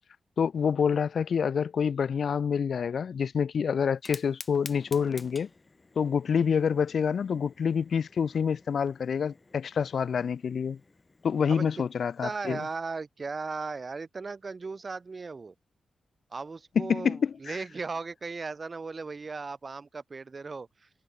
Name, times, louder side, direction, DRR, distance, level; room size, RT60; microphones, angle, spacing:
voice 1, 0.4-5.5 6.0-10.8 11.2-12.7 16.8-17.6, left 6 dB, 70° left, 0.6 m, -27 dB
Fire, 3.9-12.8, left 3 dB, 30° left, 1.7 m, -50 dB
voice 2, 12.2-15.5 16.3-20.9, right 4 dB, 45° right, 1.1 m, -37 dB
cardioid pair, 60°, 0 cm